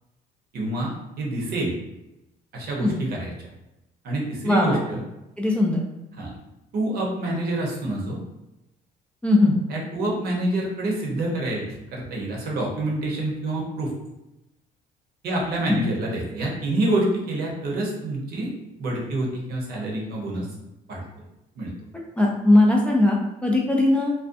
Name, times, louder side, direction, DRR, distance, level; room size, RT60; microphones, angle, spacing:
voice 1, 0.5-1.7 2.5-3.3 4.0-5.0 6.2-6.3 6.7-8.2 9.7-11.6 11.9-13.9 15.2-18.5 18.8-20.5 20.9-21.0 21.6-21.7, right 1 dB, 65° right, -2 dB, 0.8 m, -27 dB
voice 2, 4.4-4.8 5.4-5.8 9.2-9.6 15.7-15.8 22.2-24.1, left 2 dB, 5° left, -2 dB, 0.4 m, -19 dB
2.5 x 2.1 x 2.5 m, 0.95 s
cardioid pair, 110°, 17 cm